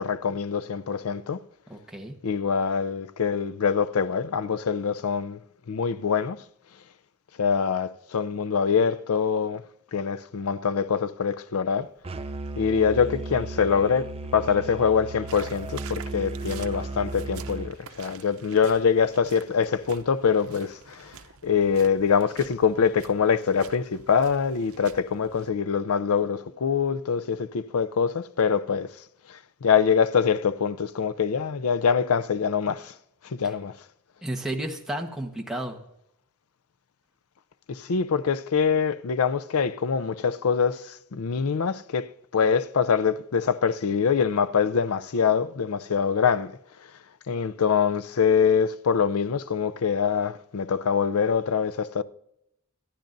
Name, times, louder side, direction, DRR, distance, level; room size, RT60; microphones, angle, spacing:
voice 1, 0.0-1.4 2.2-5.4 5.7-6.4 7.4-9.6 9.9-11.9 12.6-21.2 21.4-28.9 29.3-32.9 33.2-33.7 37.7-46.6 47.3-52.0, left 6 dB, 90° left, 0.5 m, -24 dB
voice 2, 1.7-2.1 33.4-33.5 34.2-35.8, right 1 dB, 5° right, 1.2 m, -32 dB
Musical instrument, 12.0-17.7, right 2 dB, 25° right, 0.5 m, -35 dB
sound 1, 15.3-25.5, right 7 dB, 85° right, 0.7 m, -47 dB
25.5 x 10.5 x 2.6 m
head